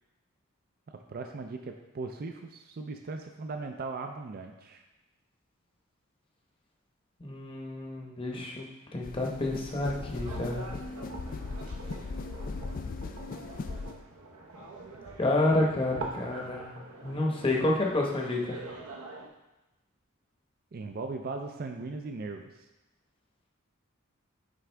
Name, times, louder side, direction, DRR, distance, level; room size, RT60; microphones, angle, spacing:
voice 1, 0.9-4.8 20.7-22.6, right 3 dB, 45° right, 4 dB, 0.4 m, -38 dB
voice 2, 7.2-8.7 8.9-10.7 15.2-16.8 17.0-18.6, left 2 dB, 25° left, -1 dB, 0.9 m, -29 dB
sound 1, 9.0-14.0, left 3 dB, 40° left, 0.3 m, -38 dB
sound 2, 9.9-19.3, right 3 dB, 90° right, 1.0 m, -44 dB
9.1 x 3.6 x 3.4 m, 1.0 s
head